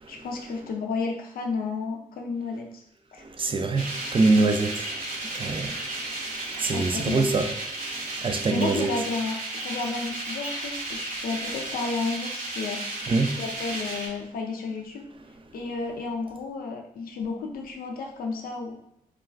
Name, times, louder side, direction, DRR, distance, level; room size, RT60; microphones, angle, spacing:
voice 1, 0.1-2.8 3.1-3.2 6.7-7.3 8.5-12.8 13.4-15.1 15.5-18.7, left 4 dB, 80° left, 0.4 m, -32 dB
voice 2, 3.2-7.5 7.8-8.9 13.1-13.4, right 3 dB, 35° right, 0.4 m, -26 dB
sound 1, 3.7-14.1, right 2 dB, 65° right, 0.7 m, -34 dB
2.3 x 2.3 x 3.2 m
cardioid pair, 60°, 15 cm